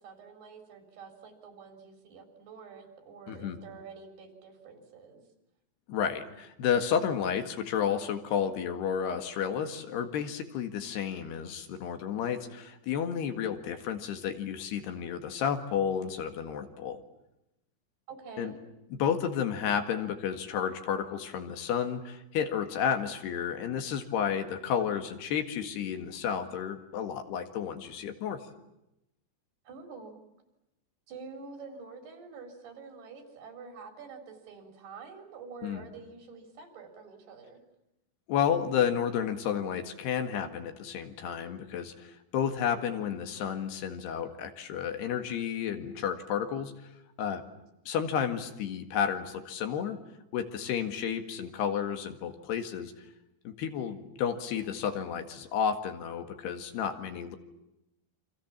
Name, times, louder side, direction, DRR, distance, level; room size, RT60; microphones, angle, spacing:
voice 1, 0.0-5.2 18.1-18.6 29.7-30.2 31.1-37.6, right 5 dB, 70° right, 5 dB, 6.0 m, -47 dB
voice 2, 3.3-3.6 5.9-17.0 18.4-18.5 18.9-28.4 35.6-35.8 38.3-46.7 47.2-47.4 47.9-50.0 50.3-52.9 53.5-57.4, left 8 dB, 75° left, 7 dB, 3.8 m, -31 dB
29.0 x 26.0 x 7.3 m, 0.88 s
omnidirectional pair, 4.9 m